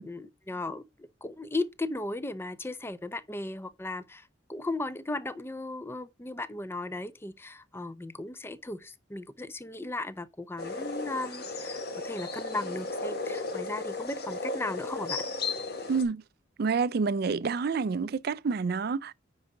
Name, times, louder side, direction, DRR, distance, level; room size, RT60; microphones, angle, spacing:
voice 1, 0.0-15.3, left 2 dB, 10° left, 0.5 m, -36 dB
sound 1, 10.6-16.0, left 3 dB, 55° left, 1.4 m, -35 dB
voice 2, 15.9-16.2 16.6-19.1, right 5 dB, 55° right, 0.4 m, -28 dB
9.5 x 4.8 x 3.9 m
head